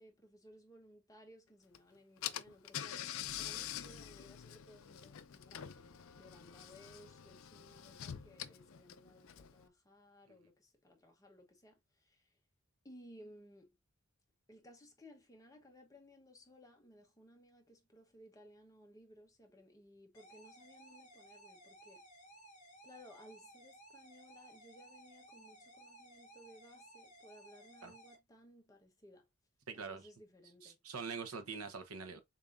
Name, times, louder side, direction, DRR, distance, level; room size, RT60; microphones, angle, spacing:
voice 1, 0.0-3.1 3.3-12.3 12.8-13.8 14.5-22.0 22.8-29.3 29.7-30.8 32.1-32.2, equal, 15° left, 1.0 m, -60 dB
Car / Engine, 1.7-1.8 2.2-9.7, left 10 dB, 65° left, 0.4 m, -46 dB
sound 1, 20.1-28.2, right 1 dB, 35° left, 1.9 m, -58 dB
voice 2, 29.7-30.1 30.6-32.2, right 5 dB, 85° right, 0.9 m, -44 dB
6.9 x 2.7 x 2.5 m
head